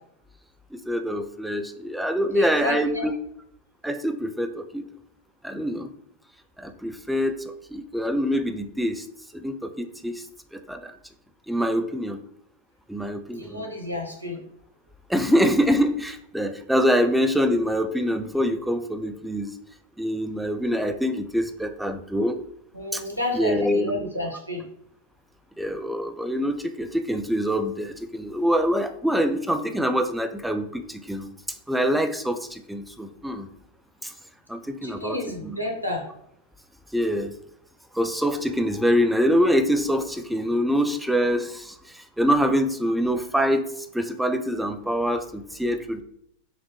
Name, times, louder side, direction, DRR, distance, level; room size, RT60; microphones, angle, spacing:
voice 1, 0.7-3.1 3.8-4.9 5.4-5.9 6.6-9.1 9.3-10.2 10.5-10.9 11.5-12.2 12.9-13.7 15.1-19.5 20.0-22.4 22.9-23.0 23.3-24.1 25.6-31.3 31.7-33.5 34.0-34.1 34.5-35.6 36.9-37.3 37.9-46.0, equal, 5° right, 7 dB, 0.3 m, -25 dB
voice 2, 2.3-3.1 13.3-14.5 22.7-24.7 34.8-36.1, left 2 dB, 90° left, 1 dB, 0.7 m, -31 dB
3.0 x 2.5 x 3.2 m, 0.71 s
figure-of-eight pair, 90°, 0 cm